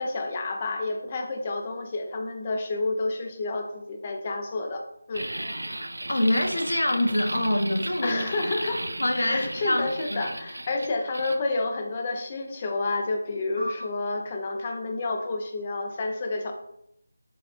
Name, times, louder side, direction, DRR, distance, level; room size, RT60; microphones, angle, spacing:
voice 1, 0.0-4.8 5.1-5.3 8.0-8.8 9.2-16.5, left 2 dB, 25° left, 3 dB, 0.4 m, -29 dB
sound 1, 5.1-11.4, right 1 dB, 80° right, 0.3 m, -35 dB
voice 2, 6.1-8.2 9.0-10.2 13.6-13.7, left 1 dB, 80° left, 3 dB, 0.5 m, -25 dB
4.2 x 2.4 x 2.3 m, 0.77 s
figure-of-eight pair, 165°, 0 cm